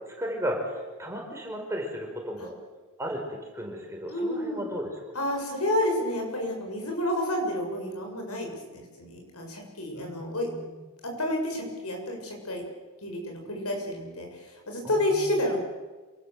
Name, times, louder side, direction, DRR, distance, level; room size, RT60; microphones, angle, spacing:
voice 1, 0.2-0.6 1.0-2.5 3.0-5.0 9.9-10.7 14.8-15.3, equal, 10° right, 0 dB, 5.3 m, -35 dB
voice 2, 4.1-4.7 5.1-10.5 11.2-12.6 13.0-14.3 14.7-15.6, left 1 dB, 85° left, 2 dB, 7.4 m, -30 dB
27.5 x 19.0 x 7.8 m, 1.3 s
head